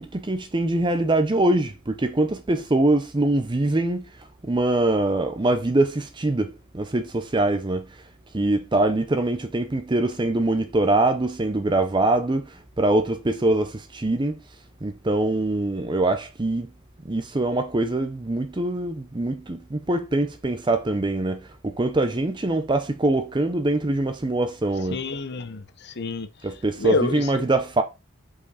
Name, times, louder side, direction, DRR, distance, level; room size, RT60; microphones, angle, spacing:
voice 1, 0.0-4.1 4.4-7.9 8.3-14.3 14.8-16.7 17.0-25.0 26.4-27.8, right 2 dB, 20° right, 0.5 m, -23 dB
voice 2, 24.9-26.3 26.8-27.5, left 3 dB, 50° left, 0.8 m, -28 dB
5.7 x 5.0 x 4.1 m
head